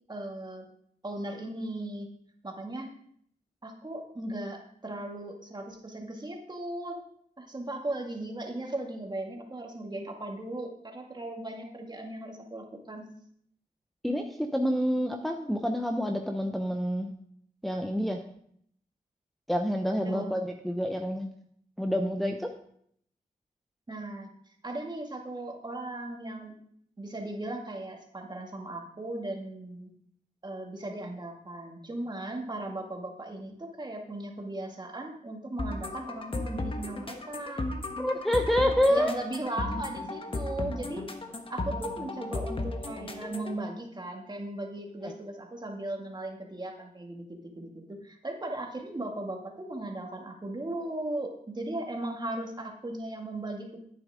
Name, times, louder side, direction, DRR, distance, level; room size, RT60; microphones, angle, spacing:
voice 1, 0.1-0.7 1.0-2.1 2.4-2.9 3.6-7.0 7.4-13.1 20.0-20.3 23.9-24.3 24.6-26.6 27.0-29.9 30.4-37.7 38.7-41.1 41.5-53.8, right 1 dB, 30° right, 1 dB, 2.1 m, -37 dB
voice 2, 14.0-17.1 17.6-18.2 19.5-21.3 21.8-22.5 38.0-39.1 45.0-45.1, equal, ahead, 3 dB, 0.8 m, -28 dB
sound 1, 35.6-43.6, left 2 dB, 35° left, 1.3 m, -35 dB
11.0 x 9.1 x 3.6 m, 0.66 s
cardioid pair, 70°, 15 cm